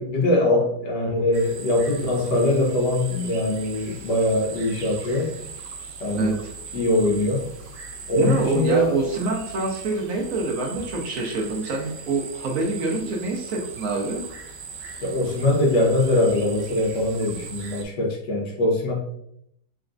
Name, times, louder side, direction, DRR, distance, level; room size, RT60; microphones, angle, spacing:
voice 1, 0.0-5.3 6.0-6.4 6.7-7.4 8.1-9.0 15.0-18.9, left 1 dB, 85° left, -1 dB, 1.7 m, -22 dB
sound 1, 1.3-17.8, right 5 dB, 90° right, 1.3 m, -39 dB
voice 2, 6.1-6.5 8.2-14.2, right 3 dB, 65° right, 1 dB, 0.9 m, -26 dB
4.0 x 3.4 x 2.5 m, 0.73 s
omnidirectional pair, 1.8 m